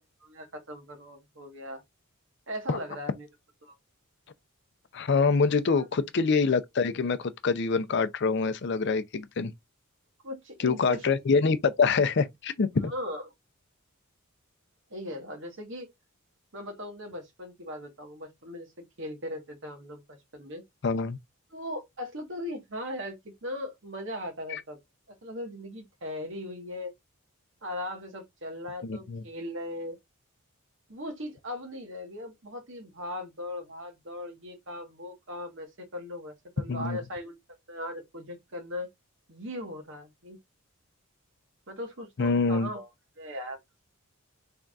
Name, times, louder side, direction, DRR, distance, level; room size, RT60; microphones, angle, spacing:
voice 1, 0.2-1.8 2.5-3.3 3.6-3.7 5.7-5.9 10.2-11.1 12.8-13.3 14.9-15.9 16.5-18.7 19.0-20.6 21.5-24.8 25.1-26.9 27.6-30.0 30.9-37.4 37.7-38.9 39.3-40.4 41.7-42.9 43.2-43.6, left 1 dB, 55° right, 1.3 m, -38 dB
voice 2, 4.9-9.5 10.6-12.9 20.8-21.2 24.5-24.6 28.8-29.2 36.7-37.0 42.2-42.7, left 4 dB, 50° left, 0.4 m, -25 dB
3.9 x 3.4 x 2.3 m
head